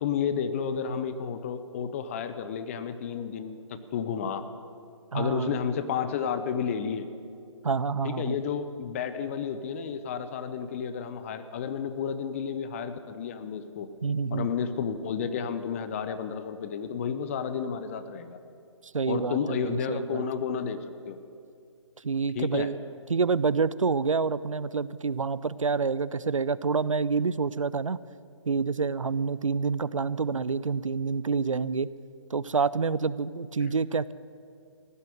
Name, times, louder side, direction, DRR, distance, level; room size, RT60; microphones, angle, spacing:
voice 1, 0.0-4.4 5.1-7.1 8.0-13.9 14.3-18.4 19.1-21.2 22.3-22.7, left 7 dB, 25° left, 11 dB, 0.6 m, -31 dB
voice 2, 5.1-5.6 7.6-8.4 14.0-14.5 18.9-20.2 22.0-22.8 23.1-28.0 28.5-31.9 32.3-34.1, right 5 dB, 85° right, 18 dB, 0.5 m, -27 dB
16.0 x 7.5 x 9.0 m, 2.5 s
figure-of-eight pair, 140°, 16 cm